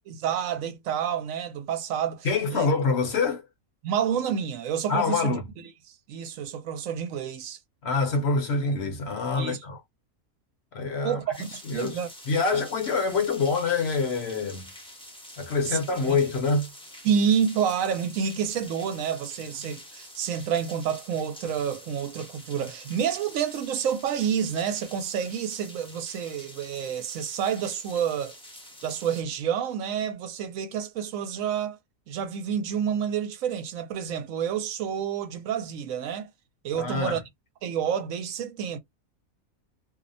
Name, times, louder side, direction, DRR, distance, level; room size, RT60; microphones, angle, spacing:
voice 1, 0.0-2.7 3.8-5.4 5.9-7.6 9.4-9.6 11.0-12.1 12.5-12.7 15.7-15.8 17.0-28.3 28.8-31.8 32.1-36.3 36.6-37.2 37.6-38.8, right 8 dB, 75° right, 0.9 m, -29 dB
voice 2, 2.2-3.4 4.9-5.4 7.8-9.8 10.7-11.2 11.6-12.0 12.3-14.7 15.4-16.7 36.7-37.2, left 4 dB, 55° left, 0.9 m, -25 dB
sound 1, 11.3-29.2, left 1 dB, 5° left, 0.5 m, -47 dB
2.6 x 2.0 x 2.5 m
omnidirectional pair, 1.5 m